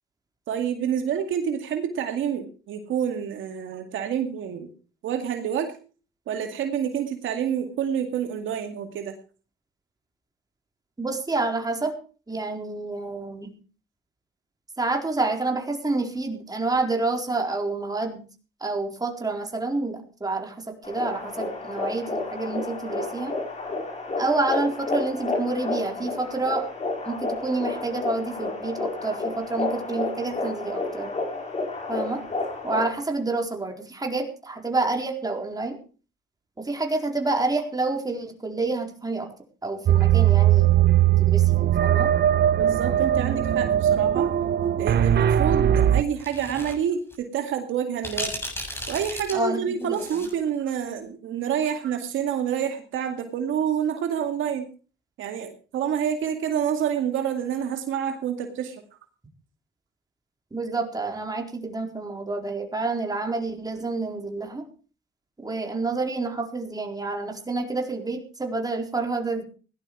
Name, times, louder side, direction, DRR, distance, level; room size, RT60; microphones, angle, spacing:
voice 1, 0.5-4.7 5.0-5.7 6.3-9.1 42.5-44.3 44.8-48.3 48.9-54.7 55.2-58.8, right 8 dB, 80° right, 5 dB, 2.2 m, -28 dB
voice 2, 11.0-11.9 12.3-13.5 14.8-18.2 18.6-23.3 24.2-26.7 27.0-31.1 31.9-32.2 32.6-35.8 36.6-39.3 39.6-42.1 49.3-50.0 60.5-64.6 65.4-69.4, right 3 dB, 20° right, 2 dB, 4.3 m, -28 dB
sound 1, 20.8-33.0, left 3 dB, 35° left, 6.3 m, -31 dB
sound 2, 39.9-46.0, right 11 dB, 55° right, 0.9 m, -19 dB
sound 3, 46.2-46.7 47.1-47.2 48.0-50.4, equal, 10° left, 7.4 m, -34 dB
17.5 x 11.5 x 4.9 m, 0.39 s
cardioid pair, 90°, 20 cm